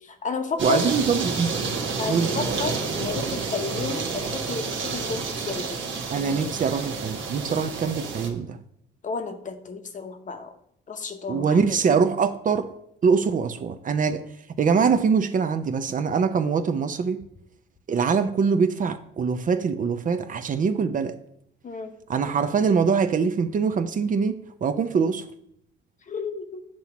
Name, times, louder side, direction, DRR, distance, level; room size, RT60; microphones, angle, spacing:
voice 1, 0.0-0.9 2.0-6.5 7.5-7.6 9.0-10.5 10.9-11.8 21.6-21.9 26.1-26.6, left 5 dB, 40° left, 0.8 m, -32 dB
voice 2, 0.6-1.5 2.1-2.3 6.1-8.6 11.3-12.7 13.0-14.2 14.6-17.2 17.9-21.2 22.1-24.4 24.6-25.3, right 5 dB, 40° right, 0.5 m, -23 dB
sound 1, 0.6-8.3, right 4 dB, 70° right, 1.0 m, -29 dB
7.6 x 2.9 x 5.8 m
cardioid pair, 90°, 20 cm